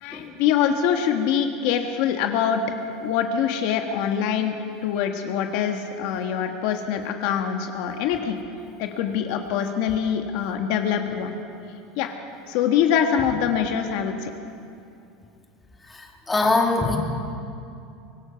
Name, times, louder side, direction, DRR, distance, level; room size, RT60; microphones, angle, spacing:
voice 1, 0.0-2.6 3.0-4.5 4.8-8.4 8.8-11.4 12.0-12.1 12.5-14.3, left 8 dB, 60° left, 4 dB, 1.6 m, -24 dB
voice 2, 16.0-17.0, left 3 dB, 10° left, 1 dB, 2.1 m, -22 dB
24.5 x 18.5 x 5.9 m, 2.6 s
supercardioid pair, 155°, 0 cm